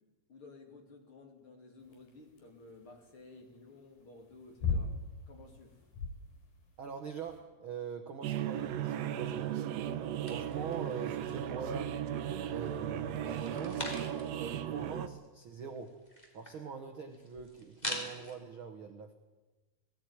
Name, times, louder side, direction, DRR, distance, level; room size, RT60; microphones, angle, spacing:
voice 1, 0.3-4.9 5.3-5.8, left 3 dB, 40° left, 3 dB, 3.4 m, -54 dB
sound 1, 1.8-7.4, left 4 dB, 80° left, 6.2 m, -38 dB
voice 2, 6.8-9.5 10.3-12.0 12.5-13.9 14.3-16.0 16.3-19.1, right 6 dB, 55° right, 6 dB, 1.5 m, -43 dB
sound 2, 8.2-15.1, right 10 dB, 75° right, 1.6 m, -36 dB
sound 3, 10.3-11.6 12.0-12.6 13.2-14.5 14.8-14.9 15.1-18.4, left 1 dB, 10° left, 3.4 m, -44 dB
19.5 x 17.0 x 9.6 m, 1.2 s
omnidirectional pair, 4.1 m